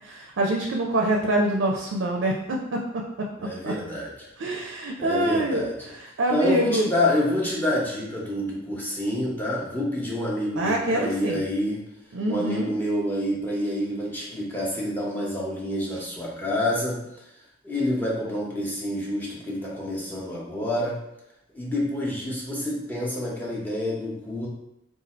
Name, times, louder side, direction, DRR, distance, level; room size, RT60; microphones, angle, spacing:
voice 1, 0.0-3.3 3.6-3.7 4.4-6.9 10.6-11.4 12.1-12.7, right 1 dB, 75° right, 0 dB, 0.4 m, -25 dB
voice 2, 3.4-4.3 5.0-5.7 6.3-11.8 12.3-17.0 17.6-21.0 21.5-24.5, left 1 dB, 10° left, -5 dB, 0.8 m, -27 dB
2.6 x 2.3 x 4.1 m, 0.85 s
head